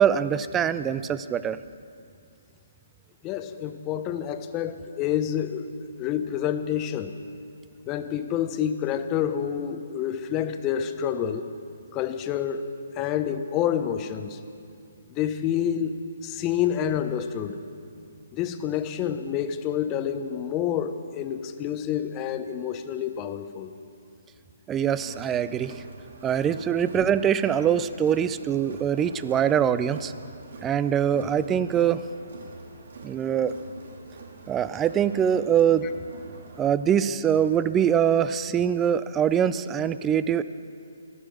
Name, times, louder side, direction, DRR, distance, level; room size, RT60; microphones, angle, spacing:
voice 1, 0.0-1.6 24.7-25.8 26.2-30.1 30.6-32.0 33.0-33.5 34.5-35.9 36.6-40.4, right 9 dB, 15° right, 14 dB, 0.4 m, -23 dB
voice 2, 3.2-5.7 6.0-7.1 7.9-11.4 11.9-12.6 13.0-14.4 15.2-17.6 18.3-23.7, left 9 dB, 25° left, 9 dB, 0.8 m, -28 dB
Crowd, 24.9-36.7, right 3 dB, 60° right, 2.2 m, -45 dB
15.0 x 11.5 x 6.2 m, 2.4 s
hypercardioid pair, 145°, 0 cm